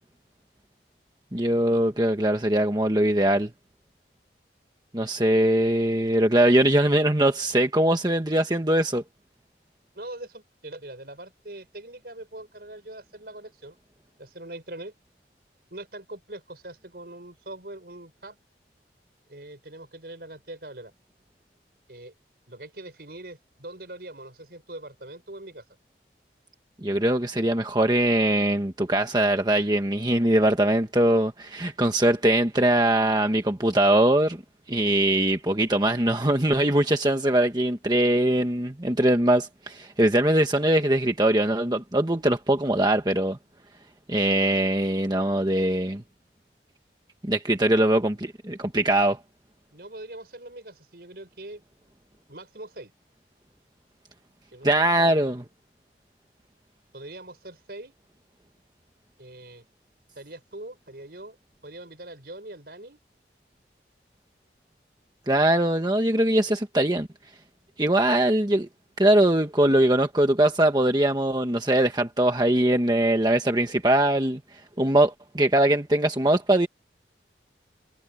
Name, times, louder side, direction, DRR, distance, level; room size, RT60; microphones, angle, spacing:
voice 1, 1.3-3.5 4.9-9.0 26.8-34.4 34.7-43.4 44.1-46.0 47.2-49.2 54.6-55.4 65.3-67.1 67.8-68.7 69.0-74.4 74.8-76.7, right 1 dB, 20° right, 1.3 m, -22 dB
voice 2, 9.9-13.8 14.2-14.9 15.7-18.4 19.3-20.9 21.9-22.1 22.5-25.6 47.7-47.8 49.7-51.6 52.3-52.9 54.5-55.2 56.9-57.9 59.2-59.6 60.2-61.4 61.6-63.0, right 1 dB, 60° right, 5.6 m, -42 dB
head